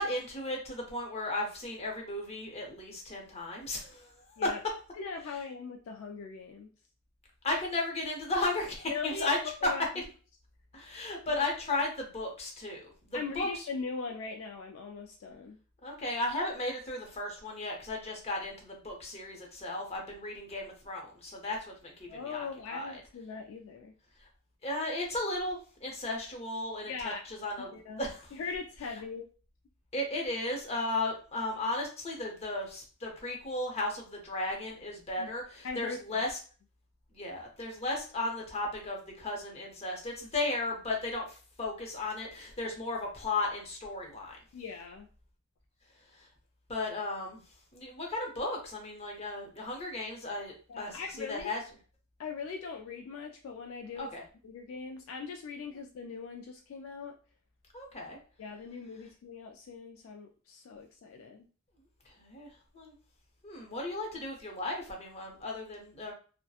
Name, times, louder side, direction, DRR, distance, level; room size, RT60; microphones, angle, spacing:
voice 1, 0.0-4.5 7.4-9.4 9.6-9.7 10.7-13.6 15.8-23.0 24.2-24.3 24.6-28.3 29.9-36.4 37.1-44.4 46.1-46.3 46.7-47.4 47.7-51.6 54.0-54.2 57.7-58.2 62.1-62.9 63.4-66.1, left 2 dB, 30° left, 0 dB, 0.7 m, -35 dB
voice 2, 5.0-6.7 8.9-9.3 9.6-9.8 13.1-15.6 22.1-23.9 26.9-27.2 27.7-29.3 35.2-35.3 35.6-36.3 44.5-45.1 50.7-51.5 52.2-54.1 54.4-57.1 58.4-61.5, left 5 dB, 65° left, 3 dB, 0.3 m, -40 dB
2.7 x 2.1 x 2.3 m, 0.38 s
head